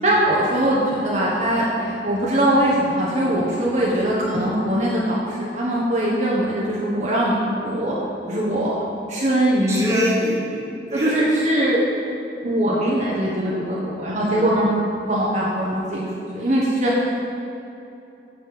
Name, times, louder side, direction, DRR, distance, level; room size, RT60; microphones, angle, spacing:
voice 1, 0.0-7.9 8.3-8.8 9.1-9.8 10.9-11.9 12.4-17.1, right 1 dB, 45° right, -5 dB, 1.5 m, -21 dB
voice 2, 9.7-11.1 14.3-14.4, equal, 15° right, -6 dB, 2.1 m, -25 dB
9.8 x 6.7 x 6.9 m, 2.8 s
head